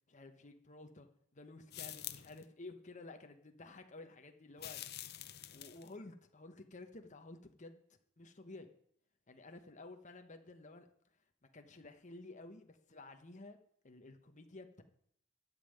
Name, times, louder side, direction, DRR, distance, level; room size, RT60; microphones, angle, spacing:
voice 1, 0.1-4.8 5.5-7.8 8.2-8.7 9.3-10.9 11.5-13.6 13.8-14.8, left 2 dB, 35° left, 6 dB, 1.1 m, -53 dB
sound 1, 1.7-2.4 4.6-5.9, left 13 dB, 50° left, 0.7 m, -47 dB
12.5 x 5.5 x 9.1 m, 0.67 s
head